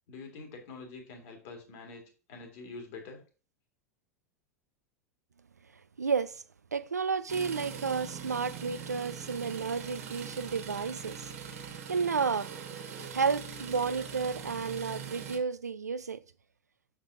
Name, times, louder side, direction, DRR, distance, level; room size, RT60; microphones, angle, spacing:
voice 1, 0.1-3.2, left 3 dB, 55° left, 2.2 m, -46 dB
voice 2, 6.0-6.4 6.7-11.3 11.9-12.5 13.1-16.2, right 5 dB, 85° right, 0.4 m, -31 dB
sound 1, 7.3-15.4, right 7 dB, 65° right, 1.4 m, -42 dB
6.5 x 5.9 x 2.7 m
figure-of-eight pair, 85°, 9 cm